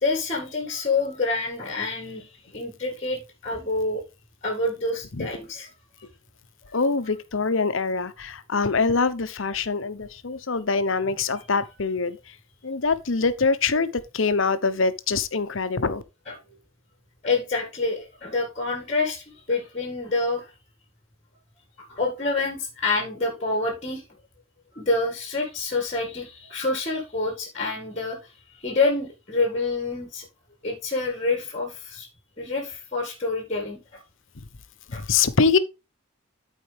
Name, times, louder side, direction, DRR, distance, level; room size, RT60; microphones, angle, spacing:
voice 1, 0.0-4.1 4.4-5.7 16.3-16.4 17.2-20.4 21.9-24.0 24.8-30.3 30.6-32.1 32.4-34.0 34.9-35.0, left 3 dB, 30° left, 1.9 m, -27 dB
voice 2, 6.7-12.2 12.6-13.9 14.1-16.0 34.9-35.6, left 4 dB, 65° left, 0.9 m, -24 dB
13.0 x 4.6 x 3.3 m
head